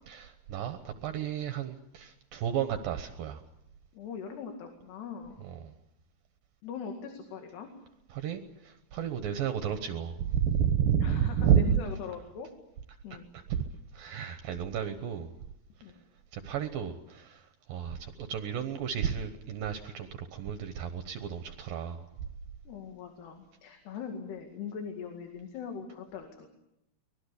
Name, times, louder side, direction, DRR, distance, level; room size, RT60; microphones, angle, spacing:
voice 1, 0.1-3.4 5.4-5.7 8.1-11.8 13.3-13.6 13.9-15.3 16.3-22.0, right 9 dB, 70° right, 8 dB, 2.7 m, -31 dB
voice 2, 3.9-5.4 6.6-7.7 11.0-12.5 13.0-13.3 15.8-16.0 22.7-26.5, left 6 dB, 90° left, 4 dB, 4.3 m, -41 dB
24.5 x 20.0 x 8.3 m, 0.81 s
omnidirectional pair, 4.6 m